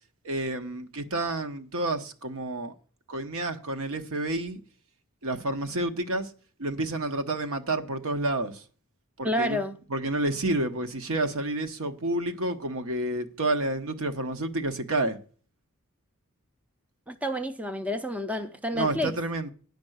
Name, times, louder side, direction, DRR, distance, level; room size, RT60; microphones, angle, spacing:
voice 1, 0.2-2.7 3.1-4.6 5.2-6.3 6.6-8.6 9.2-9.6 9.9-15.2 18.7-19.5, right 2 dB, 70° right, 1.0 m, -29 dB
voice 2, 9.2-9.7 17.1-19.2, left 1 dB, 5° right, 0.4 m, -29 dB
9.9 x 5.2 x 7.9 m
head